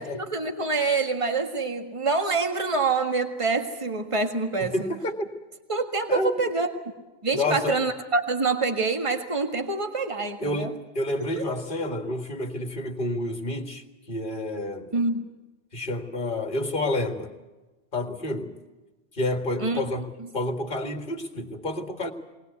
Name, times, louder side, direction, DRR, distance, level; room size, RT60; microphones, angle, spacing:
voice 1, 0.0-4.9 5.7-6.7 7.2-10.7 11.4-11.5 14.9-15.2 19.6-19.8, right 3 dB, 30° right, 5 dB, 1.8 m, -26 dB
voice 2, 4.6-5.3 6.1-6.4 7.3-7.8 10.4-14.9 15.7-17.3 17.9-18.6 19.1-20.1 20.3-22.1, left 1 dB, 55° left, 5 dB, 2.0 m, -29 dB
21.5 x 20.0 x 8.2 m, 1.2 s
omnidirectional pair, 1.1 m